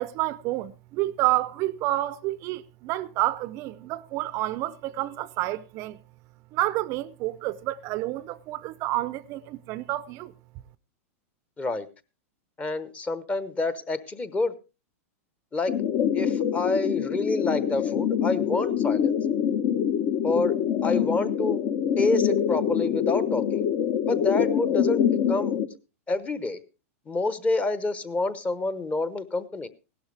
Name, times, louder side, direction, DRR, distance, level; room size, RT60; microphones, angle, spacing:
voice 1, 0.0-6.0 6.5-10.3, right 16 dB, 40° right, 0.5 m, -29 dB
voice 2, 12.6-14.5 15.5-15.8 16.1-19.1 20.2-20.5 20.8-21.6 22.0-23.6 24.1-25.0 25.3-25.6 26.1-26.6 27.1-29.7, left 2 dB, 15° left, 1.0 m, -28 dB
sound 1, 15.7-25.7, left 8 dB, 45° left, 1.0 m, -25 dB
17.0 x 12.0 x 3.3 m
hypercardioid pair, 135°, 8 cm